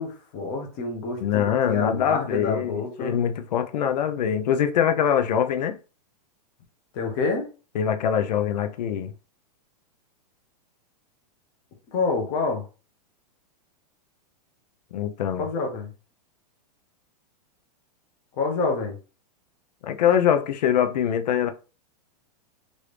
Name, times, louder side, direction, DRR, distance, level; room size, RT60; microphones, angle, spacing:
voice 1, 0.0-3.2 6.9-7.5 11.9-12.6 15.4-15.9 18.3-19.0, left 3 dB, 30° left, 0.8 m, -27 dB
voice 2, 1.2-5.8 7.8-9.1 14.9-15.4 19.8-21.5, left 9 dB, 90° left, 0.5 m, -23 dB
3.1 x 2.6 x 3.3 m
supercardioid pair, 175°, 21 cm